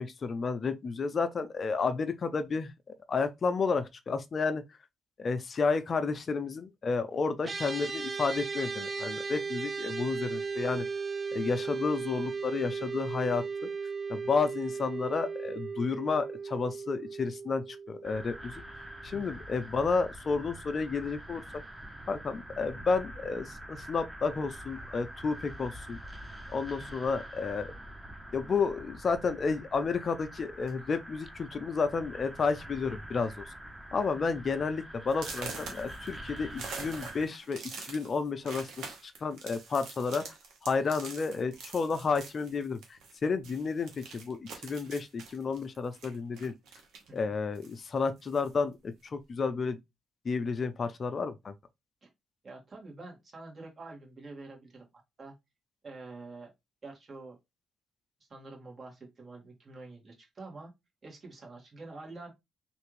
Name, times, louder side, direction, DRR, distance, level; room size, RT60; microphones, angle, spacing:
voice 1, 0.0-2.7 3.1-4.6 5.2-10.9 11.3-13.7 14.1-18.5 19.0-21.4 22.1-26.0 26.5-27.7 28.3-33.5 33.9-38.7 39.0-40.2 40.6-46.5 47.1-49.8 50.2-51.5, left 4 dB, 50° left, 0.4 m, -31 dB
sound 1, 7.4-18.9, right 5 dB, 25° right, 0.5 m, -36 dB
sound 2, 18.0-37.3, right 1 dB, 5° right, 0.9 m, -45 dB
sound 3, 30.6-30.9 31.7-31.8 32.2-32.5 32.8-33.2 33.7-33.8 34.3-34.4 35.1-43.2 43.4-47.2 47.5-48.6, right 4 dB, 80° right, 1.1 m, -45 dB
voice 2, 52.4-54.9 55.2-55.3 55.8-56.5 56.8-57.4 58.3-60.7 61.0-62.3, right 3 dB, 45° right, 1.8 m, -47 dB
3.3 x 2.5 x 3.1 m
supercardioid pair, 60°, 0 cm